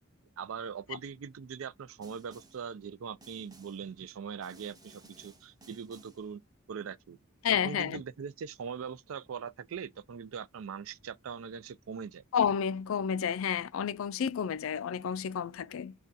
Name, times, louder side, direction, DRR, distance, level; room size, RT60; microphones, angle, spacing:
voice 1, 0.4-6.4 6.7-7.2 7.6-12.2, right 6 dB, 75° right, 0.4 m, -41 dB
Snare drum, 2.0-2.7 3.2-3.9 4.4-6.3, right 3 dB, 20° right, 0.7 m, -58 dB
voice 2, 7.4-8.0 12.3-15.9, left 8 dB, 75° left, 0.4 m, -30 dB
6.2 x 2.3 x 2.6 m
head